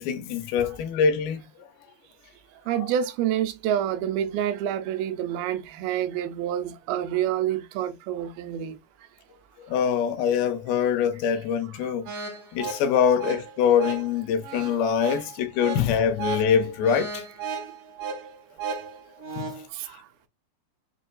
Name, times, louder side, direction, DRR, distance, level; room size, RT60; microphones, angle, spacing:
voice 1, 0.0-1.4 2.8-2.9 9.6-12.1 12.5-17.2 19.4-19.5, left 7 dB, 85° left, 2.6 m, -24 dB
voice 2, 2.7-8.8, right 10 dB, 85° right, 2.5 m, -27 dB
sound 1, 12.1-19.7, right 6 dB, 65° right, 2.4 m, -35 dB
6.5 x 2.6 x 2.3 m
omnidirectional pair, 4.3 m